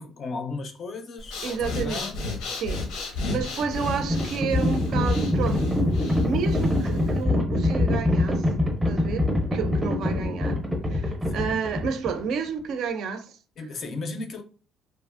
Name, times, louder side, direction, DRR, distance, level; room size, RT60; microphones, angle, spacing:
voice 1, 0.0-2.2 11.3-11.6 13.6-14.4, left 3 dB, 40° left, 0.4 m, -35 dB
Breathing, 1.2-7.2, left 3 dB, 90° left, 0.7 m, -33 dB
voice 2, 1.4-2.1 2.6-2.9 3.3-8.5 8.9-10.6 10.8-13.4, right 6 dB, 60° right, 0.4 m, -31 dB
Livestock farm animals working animals, 3.2-12.3, left 1 dB, 5° right, 0.6 m, -24 dB
2.8 x 2.4 x 2.4 m
cardioid pair, 160°, 0 cm